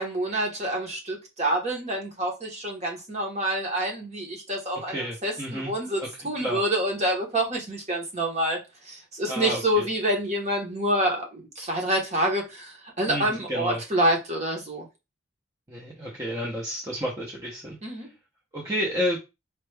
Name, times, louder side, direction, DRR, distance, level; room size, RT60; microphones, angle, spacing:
voice 1, 0.0-8.6 8.8-14.9 17.8-18.1, right 1 dB, 35° right, 1.1 m, -27 dB
voice 2, 4.9-5.7 6.0-6.1 6.4-6.6 9.3-9.9 13.1-13.8 15.7-17.8 18.5-19.2, equal, 15° right, 0.7 m, -30 dB
4.5 x 2.4 x 3.3 m
head